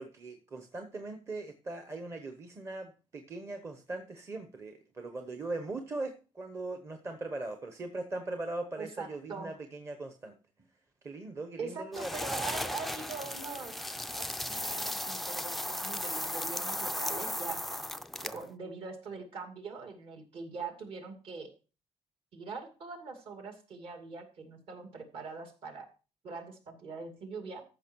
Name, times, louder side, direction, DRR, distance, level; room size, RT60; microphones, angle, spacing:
voice 1, 0.0-10.3 11.0-12.5 18.2-18.4, right 2 dB, 25° right, 6 dB, 0.9 m, -40 dB
voice 2, 8.8-9.5 11.6-13.8 14.1-17.6 18.3-21.5 22.3-25.8 26.2-27.6, right 4 dB, 50° right, 5 dB, 2.5 m, -42 dB
sound 1, 11.9-18.5, left 1 dB, ahead, 0.4 m, -36 dB
14.0 x 5.8 x 4.5 m, 0.34 s
cardioid pair, 175°, 12 cm